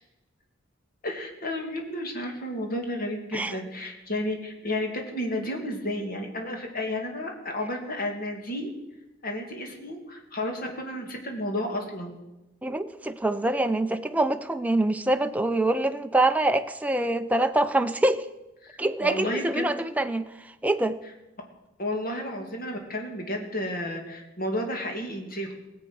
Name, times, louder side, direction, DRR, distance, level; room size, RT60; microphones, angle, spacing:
voice 1, 1.0-8.7 9.2-12.2 18.6-19.7 21.8-25.5, left 1 dB, 45° left, 2 dB, 2.5 m, -32 dB
voice 2, 12.6-18.2 18.8-20.2 20.6-21.0, right 2 dB, 5° right, 7 dB, 0.5 m, -25 dB
19.0 x 8.0 x 6.3 m, 1.0 s
head